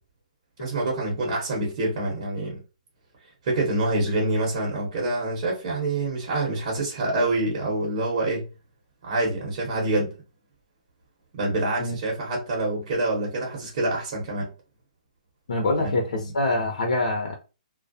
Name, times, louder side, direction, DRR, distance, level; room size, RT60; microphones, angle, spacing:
voice 1, 0.6-2.6 3.4-8.5 9.0-10.2 11.3-14.5 15.8-16.3, right 2 dB, 40° right, 1.0 m, -26 dB
voice 2, 15.5-17.4, left 2 dB, 75° left, 0.7 m, -25 dB
2.3 x 2.1 x 2.6 m
hypercardioid pair, 165°, 4 cm